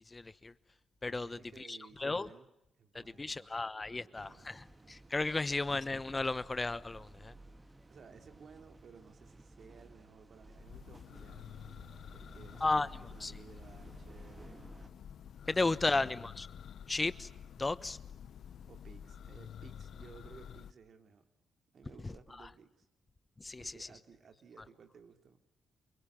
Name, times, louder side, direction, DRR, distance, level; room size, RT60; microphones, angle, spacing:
voice 1, 0.1-0.5 1.0-2.3 2.9-7.3 12.6-12.9 13.2-13.3 15.5-16.5 16.9-17.3 17.6-18.0 22.0-22.5 23.4-23.9, left 3 dB, 25° left, 1.0 m, -34 dB
voice 2, 1.1-2.5 2.8-3.5 3.8-4.6 7.9-11.8 12.1-15.0 15.4-16.3 18.7-21.3 21.7-22.9 23.5-25.4, right 6 dB, 55° right, 3.3 m, -58 dB
sound 1, 4.2-14.9, right 2 dB, 25° right, 2.4 m, -56 dB
Church bell, 10.4-20.7, left 8 dB, 65° left, 1.0 m, -50 dB
29.5 x 24.0 x 7.5 m
hypercardioid pair, 40°, 0 cm